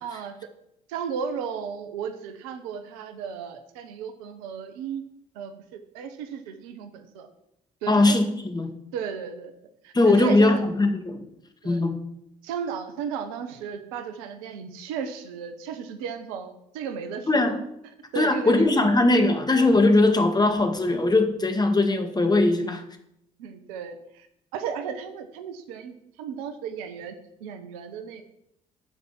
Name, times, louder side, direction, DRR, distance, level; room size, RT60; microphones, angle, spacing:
voice 1, 0.0-0.3 0.9-5.0 5.3-7.3 7.8-8.2 8.9-9.5 9.8-10.7 11.6-11.8 12.4-17.6 18.1-19.0 22.5-22.7 23.4-24.3 24.5-28.2, right 7 dB, 80° right, 9 dB, 1.0 m, -35 dB
voice 2, 7.9-8.7 9.9-11.2 11.6-12.0 17.3-17.6 18.2-22.8, left 2 dB, 20° left, 6 dB, 2.0 m, -20 dB
9.4 x 5.8 x 7.3 m, 0.78 s
hypercardioid pair, 45°, 18 cm